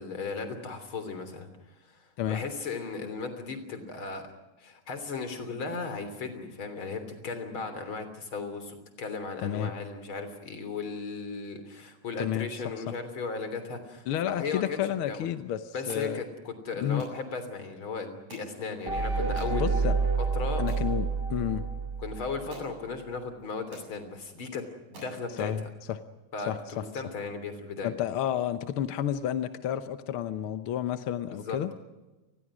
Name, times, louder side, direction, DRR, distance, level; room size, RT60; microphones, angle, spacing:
voice 1, 0.0-1.5 1.8-4.3 4.6-15.3 15.7-19.8 20.3-20.6 22.0-24.6 24.9-25.5 26.3-27.9 31.3-31.7, left 4 dB, 45° left, 9 dB, 3.9 m, -36 dB
voice 2, 9.4-9.7 12.2-12.5 14.1-16.2 16.8-17.0 19.5-20.0 20.6-21.6 25.4-25.6 25.9-26.0 26.5-26.9 27.8-31.7, left 10 dB, 65° left, 11 dB, 1.4 m, -31 dB
sound 1, 15.9-16.1 17.0-17.2 18.3-18.5 19.4-19.6 20.2-20.3 20.7-20.9 22.0-22.1 22.5-22.7 23.4-23.5 23.7-23.9 24.5-24.6 24.9-25.2, right 2 dB, 75° right, 9.2 m, -46 dB
sound 2, 18.9-22.6, right 4 dB, 55° right, 0.6 m, -29 dB
29.5 x 20.5 x 6.3 m, 1.1 s
omnidirectional pair, 3.4 m